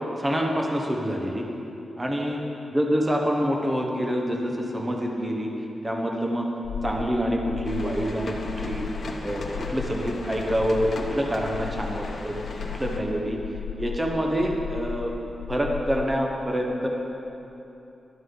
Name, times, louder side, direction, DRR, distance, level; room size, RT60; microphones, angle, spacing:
voice 1, 0.2-1.5 2.0-2.4 2.7-5.5 5.8-6.5 6.8-8.9 9.2-12.4 12.7-13.4 13.8-15.1 15.5-16.9, equal, 15° right, 1 dB, 1.0 m, -26 dB
sound 1, 6.6-16.1, left 6 dB, 85° left, 0.4 m, -36 dB
sound 2, 7.6-13.0, left 2 dB, 45° left, 1.0 m, -39 dB
13.5 x 11.5 x 3.8 m, 3.0 s
wide cardioid pair, 165°, 0 cm